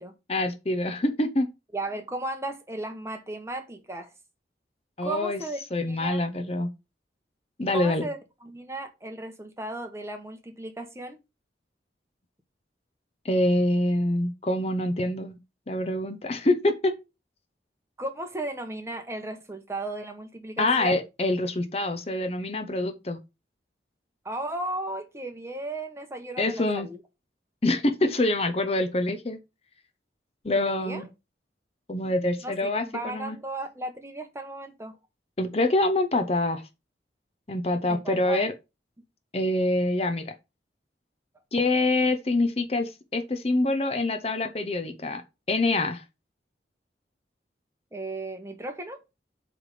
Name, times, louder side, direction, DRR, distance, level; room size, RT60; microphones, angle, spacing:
voice 1, 0.3-1.5 5.0-5.4 5.7-6.7 7.6-8.0 13.2-15.4 15.7-16.9 20.6-23.2 26.4-26.9 27.6-29.4 30.4-31.1 31.9-33.4 35.4-36.6 37.5-38.5 39.3-40.3 41.5-45.2 45.5-46.0, left 2 dB, 35° left, 0.8 m, -25 dB
voice 2, 1.7-4.1 5.0-6.2 7.7-11.2 18.0-21.0 24.2-27.0 30.6-31.0 32.4-35.0 37.9-38.4 47.9-49.0, right 2 dB, 15° right, 1.0 m, -35 dB
8.0 x 3.4 x 4.8 m
head